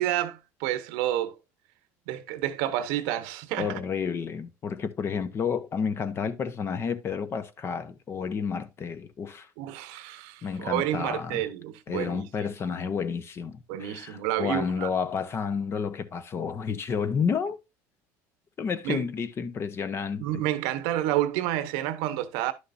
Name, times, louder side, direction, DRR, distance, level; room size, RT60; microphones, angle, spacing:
voice 1, 0.0-1.4 2.1-3.8 9.6-12.3 13.7-14.9 18.8-19.0 20.2-22.5, right 13 dB, 90° right, 1.0 m, -29 dB
voice 2, 3.6-9.5 10.4-11.4 11.9-17.6 18.6-20.4, left 6 dB, 35° left, 1.0 m, -30 dB
11.0 x 6.5 x 2.6 m
cardioid pair, 125°, 7 cm